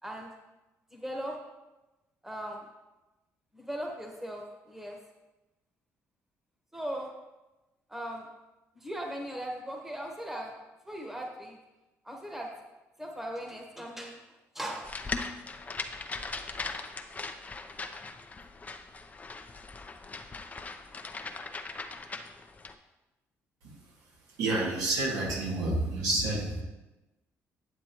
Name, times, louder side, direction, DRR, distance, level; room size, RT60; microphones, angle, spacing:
voice 1, 0.9-1.4 2.2-2.7 3.5-5.0 6.7-7.1 7.9-8.3 8.7-10.5 10.8-11.6 12.0-12.5 13.0-14.2 14.5-15.3, right 1 dB, 5° right, 0 dB, 1.4 m, -38 dB
sound 1, 14.8-22.7, left 3 dB, 25° left, 0.7 m, -39 dB
voice 2, 24.4-26.6, right 2 dB, 80° right, -3 dB, 2.3 m, -29 dB
9.4 x 7.4 x 3.1 m, 1.0 s
cardioid pair, 85°, 6 cm